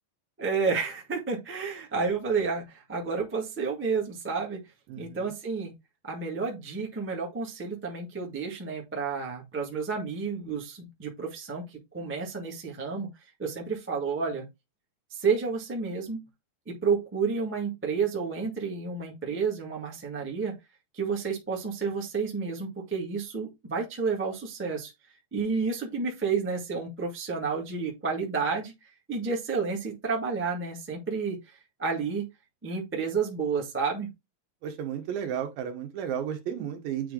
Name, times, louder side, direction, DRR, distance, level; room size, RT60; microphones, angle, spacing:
voice 1, 0.4-4.6 5.0-5.7 6.0-13.1 13.4-14.5 15.1-16.2 16.6-20.5 20.9-24.9 25.3-28.7 29.1-32.3 32.6-34.1, right 5 dB, 15° right, 0.4 m, -30 dB
voice 2, 4.9-5.2 34.6-37.1, right 9 dB, 80° right, 2.8 m, -33 dB
8.7 x 3.3 x 3.8 m
omnidirectional pair, 4.0 m